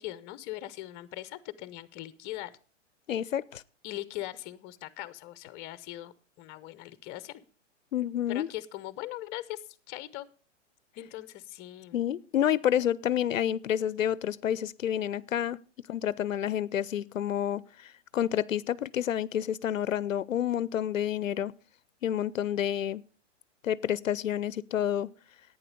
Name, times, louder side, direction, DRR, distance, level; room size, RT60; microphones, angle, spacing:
voice 1, 0.0-2.5 3.8-7.4 8.3-10.3 11.0-12.0, left 15 dB, 30° left, 0.7 m, -40 dB
voice 2, 3.1-3.6 7.9-8.5 11.9-15.6 15.9-21.5 22.0-23.0 23.6-25.1, left 10 dB, 90° left, 0.6 m, -29 dB
11.0 x 9.2 x 5.2 m
hypercardioid pair, 115°, 38 cm